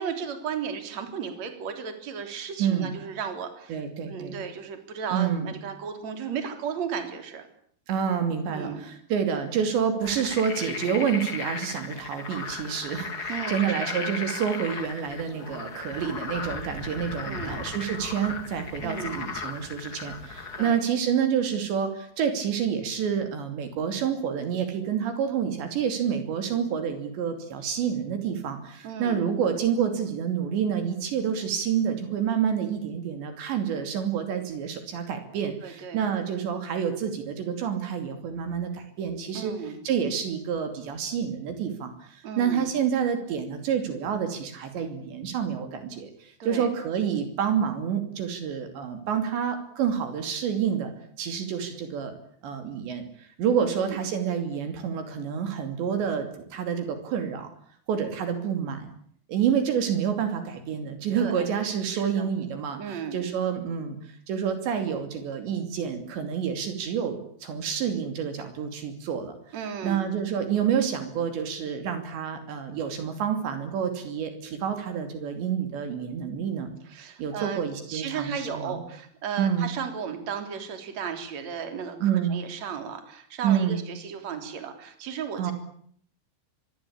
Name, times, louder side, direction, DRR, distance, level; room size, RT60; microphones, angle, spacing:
voice 1, 0.0-7.5 8.5-8.8 13.3-14.0 17.2-17.6 18.8-19.2 20.6-20.8 28.8-29.2 35.6-36.0 39.3-39.8 42.2-42.7 46.4-46.7 53.8-54.0 61.2-61.5 61.9-62.3 62.8-63.2 69.5-70.0 76.9-77.6 77.9-85.5, right 7 dB, 40° right, 7 dB, 4.3 m, -35 dB
voice 2, 2.6-2.9 3.7-4.4 5.1-5.5 7.9-39.5 39.8-50.9 51.2-52.1 52.4-57.5 57.9-58.9 59.3-69.3 69.8-76.7 77.2-78.8 79.4-79.7 82.0-82.4 83.4-83.8 85.4-85.5, right 8 dB, 70° right, 7 dB, 4.9 m, -28 dB
sound 1, 10.0-20.7, left 4 dB, 35° left, 1.6 m, -36 dB
25.5 x 22.5 x 8.6 m, 0.62 s
omnidirectional pair, 5.4 m